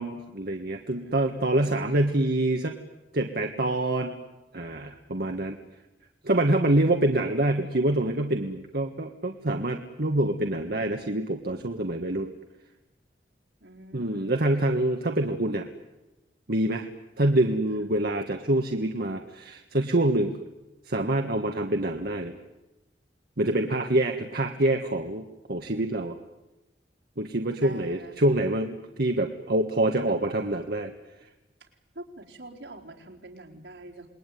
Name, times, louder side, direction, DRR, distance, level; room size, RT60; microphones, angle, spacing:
voice 1, 0.0-2.8 3.1-4.2 4.5-5.6 6.2-12.3 13.9-15.7 16.5-16.9 17.2-20.3 20.9-22.3 23.4-26.1 27.2-30.9, right 1 dB, 60° right, 4 dB, 1.7 m, -26 dB
voice 2, 0.9-1.7 13.6-14.6 17.8-17.9 27.6-28.2 31.9-34.1, right 1 dB, 80° right, 1 dB, 4.3 m, -45 dB
28.0 x 21.0 x 9.4 m, 1.0 s
head